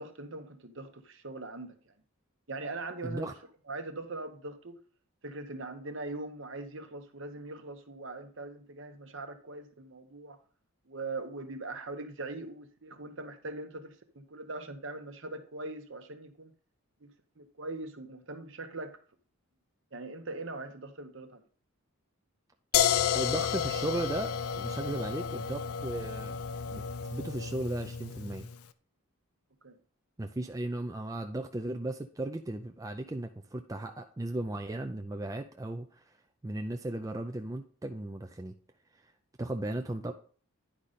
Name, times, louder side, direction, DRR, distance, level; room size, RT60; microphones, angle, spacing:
voice 1, 0.0-1.9 2.5-3.3 3.7-4.8 5.2-10.4 10.9-16.5 17.0-19.0 19.9-21.4 29.6-29.8, right 2 dB, 55° right, 8 dB, 1.0 m, -41 dB
voice 2, 3.0-3.3 23.1-24.3 24.6-26.3 26.7-26.8 27.1-28.5 30.2-36.0 36.4-38.5 39.4-40.1, right 1 dB, 15° right, 6 dB, 0.3 m, -36 dB
sound 1, 22.7-28.5, left 8 dB, 80° left, 0.5 m, -31 dB
10.0 x 5.0 x 4.1 m, 0.44 s
head